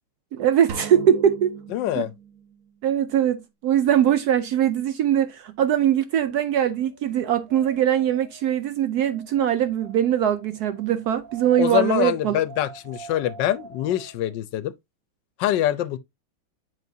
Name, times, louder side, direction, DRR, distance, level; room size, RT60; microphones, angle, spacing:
voice 1, 0.3-1.6 2.0-2.1 2.8-12.4, right 10 dB, 80° right, 0.8 m, -21 dB
sound 1, 0.7-2.7, right 7 dB, 55° right, 1.0 m, -38 dB
voice 2, 1.7-2.1 11.6-14.7 15.4-16.0, left 13 dB, 70° left, 1.2 m, -24 dB
Wind, 6.5-14.4, right 5 dB, 25° right, 2.5 m, -47 dB
7.7 x 5.3 x 2.7 m
omnidirectional pair, 2.2 m